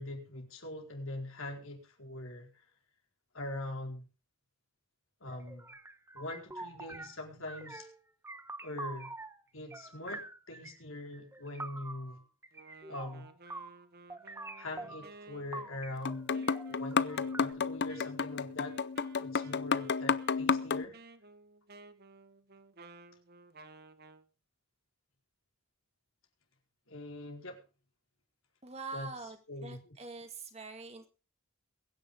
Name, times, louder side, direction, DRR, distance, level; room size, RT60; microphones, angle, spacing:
voice 1, 0.0-2.6 3.3-4.1 5.2-5.7 6.1-7.9 8.6-9.1 9.5-12.2 12.9-13.3 14.6-16.3 16.7-18.8 19.2-21.0 26.9-27.6 28.9-29.1 29.5-29.9, left 1 dB, 70° left, 2 dB, 4.6 m, -43 dB
sound 1, 5.3-7.2 7.5-8.0 8.2-9.4 9.7-10.8 11.1-13.8 14.1-15.2 15.5-17.5, right 2 dB, 10° right, 1.0 m, -46 dB
Wind instrument woodwind instrument, 12.5-24.3, right 3 dB, 50° right, 1.2 m, -56 dB
sound 2, 16.1-20.9, left 5 dB, 50° left, 0.6 m, -32 dB
voice 2, 28.6-31.1, right 3 dB, 30° right, 7 dB, 2.0 m, -44 dB
22.5 x 10.5 x 3.7 m, 0.33 s
head